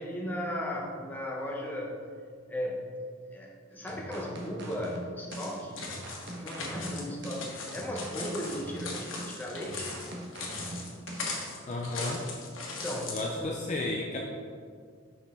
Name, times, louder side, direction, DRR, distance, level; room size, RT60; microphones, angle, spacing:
voice 1, 0.0-1.9 2.5-2.8 3.3-5.9 6.3-10.0 12.7-13.7, equal, 10° left, -3 dB, 0.9 m, -36 dB
sound 1, 3.9-11.4, right 1 dB, 55° right, 1.1 m, -42 dB
sound 2, 5.3-13.3, left 3 dB, 75° left, 1.4 m, -39 dB
voice 2, 11.7-12.2 13.1-14.2, left 2 dB, 35° left, -1 dB, 0.5 m, -33 dB
6.7 x 5.8 x 3.7 m, 2.1 s
head